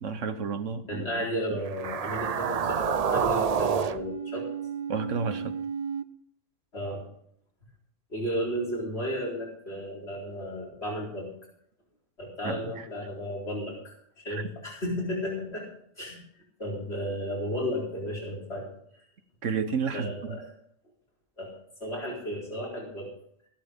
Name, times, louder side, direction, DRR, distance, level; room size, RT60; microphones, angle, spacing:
voice 1, 0.0-1.1 4.9-5.5 12.4-12.7 14.3-14.4 19.4-20.4, right 5 dB, 75° right, 10 dB, 1.4 m, -31 dB
voice 2, 0.9-4.5 6.7-7.0 8.1-11.3 12.2-15.7 16.0-16.2 16.6-18.7 19.9-20.4 21.4-21.5 21.8-23.1, equal, 55° left, -2 dB, 4.3 m, -33 dB
sound 1, 1.7-6.0, right 7 dB, 50° right, 0.4 m, -29 dB
14.5 x 12.0 x 3.6 m, 0.66 s
omnidirectional pair, 1.3 m